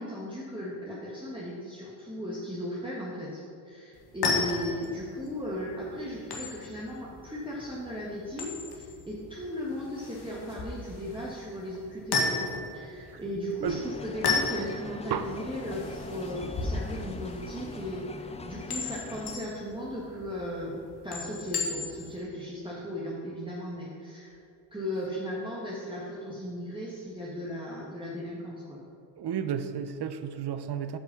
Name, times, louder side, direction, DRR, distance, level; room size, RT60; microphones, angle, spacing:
voice 1, 0.0-24.4 24.7-28.8, equal, 10° right, -6 dB, 1.6 m, -37 dB
sound 1, 3.9-22.2, left 4 dB, 55° left, 1.8 m, -35 dB
sound 2, 13.6-19.4, left 4 dB, 15° left, 0.3 m, -42 dB
voice 2, 29.2-31.0, right 8 dB, 55° right, 11 dB, 0.7 m, -32 dB
8.9 x 5.4 x 6.1 m, 2.4 s
cardioid pair, 85°, 47 cm